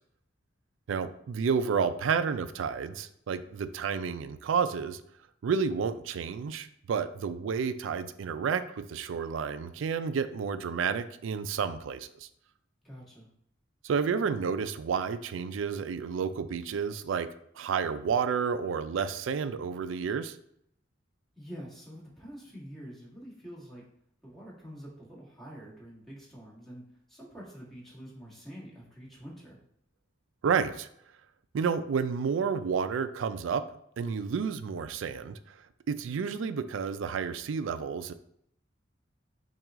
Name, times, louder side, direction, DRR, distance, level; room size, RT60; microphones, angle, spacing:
voice 1, 0.9-5.0 5.4-12.3 13.8-17.3 17.6-20.4 30.4-30.9 31.5-33.6 34.0-35.6 35.9-38.1, right 6 dB, 75° right, 12 dB, 0.4 m, -30 dB
voice 2, 12.8-13.3 21.4-23.9 24.2-29.6, equal, ahead, -7 dB, 1.6 m, -46 dB
5.9 x 2.4 x 3.6 m, 0.71 s
head